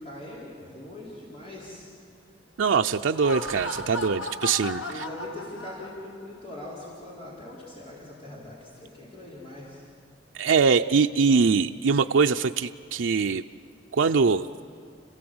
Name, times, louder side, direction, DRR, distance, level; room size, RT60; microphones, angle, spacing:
voice 1, 0.0-1.9 4.9-9.8, left 1 dB, 30° left, -6 dB, 4.4 m, -41 dB
voice 2, 2.6-5.0 10.4-13.4 13.9-14.5, right 5 dB, 80° right, 5 dB, 0.5 m, -22 dB
Laughter, 3.0-6.3, left 2 dB, 75° left, 1.5 m, -36 dB
29.5 x 16.0 x 7.9 m, 2.3 s
head